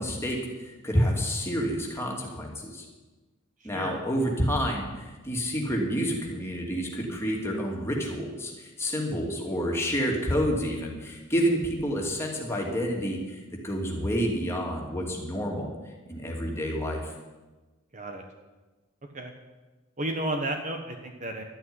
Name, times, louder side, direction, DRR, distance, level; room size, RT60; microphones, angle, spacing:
voice 1, 0.0-2.8 3.6-15.7 16.1-17.1, equal, 10° left, -1 dB, 2.7 m, -29 dB
voice 2, 17.9-18.2 19.1-19.3 20.0-21.4, right 1 dB, 35° right, 4 dB, 1.2 m, -32 dB
12.5 x 9.0 x 9.7 m, 1.2 s
head